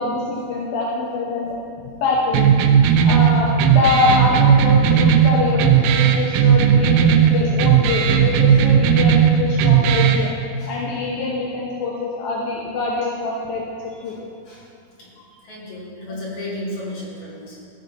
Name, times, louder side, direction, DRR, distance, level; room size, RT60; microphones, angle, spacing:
voice 1, 0.0-1.6 2.0-10.3 10.7-13.6 14.0-14.2 16.1-16.2, left 3 dB, 75° left, -3 dB, 1.8 m, -24 dB
sound 1, 2.3-10.3, right 8 dB, 85° right, 2.6 m, -15 dB
voice 2, 15.4-17.6, left 1 dB, 45° left, -7 dB, 2.8 m, -33 dB
14.0 x 5.4 x 3.9 m, 2.7 s
omnidirectional pair, 4.4 m